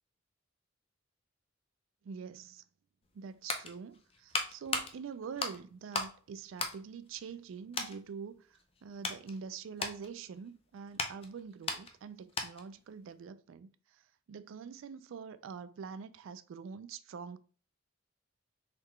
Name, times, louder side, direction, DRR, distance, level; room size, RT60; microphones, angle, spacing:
voice 1, 2.0-2.6 3.1-14.0 14.3-17.4, right 6 dB, 80° right, 0.3 m, -45 dB
sound 1, 3.0-6.2 6.5-7.4 7.7-8.0 8.5-12.8 13.1-13.2, left 3 dB, 30° left, 0.5 m, -38 dB
3.9 x 3.2 x 3.1 m
head